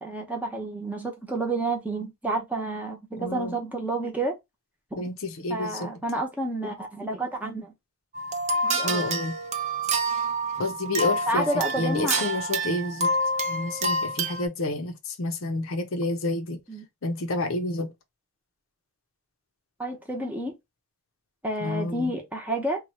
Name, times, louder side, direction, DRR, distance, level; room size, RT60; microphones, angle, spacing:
voice 1, 0.0-4.3 4.9-5.0 5.5-7.7 8.6-9.0 11.3-12.2 16.7-16.8 19.8-20.5 21.4-22.9, right 2 dB, 10° right, 0.8 m, -30 dB
voice 2, 3.2-3.6 5.0-5.9 8.8-9.4 10.6-11.5 11.8-13.1 13.5-16.6 17.0-17.9 21.6-22.1, left 2 dB, 75° left, 0.7 m, -29 dB
sound 1, 8.1-14.5, right 2 dB, 30° right, 0.6 m, -28 dB
3.0 x 2.3 x 4.1 m
head